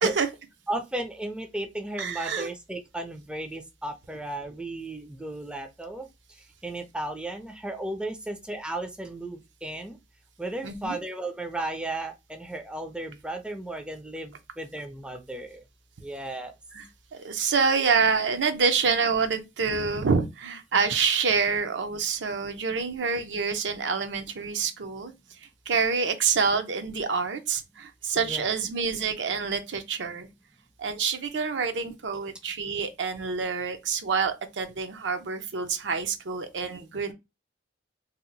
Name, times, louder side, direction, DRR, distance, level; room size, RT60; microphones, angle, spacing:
voice 1, 0.7-6.1 6.6-10.0 10.4-15.6 16.0-16.5 28.2-28.5, right 1 dB, 5° right, 0.4 m, -35 dB
voice 2, 2.0-2.5 10.6-11.0 16.7-16.8 17.1-25.4 25.7-30.3 30.8-37.1, right 5 dB, 70° right, 0.6 m, -27 dB
2.8 x 2.0 x 3.8 m
head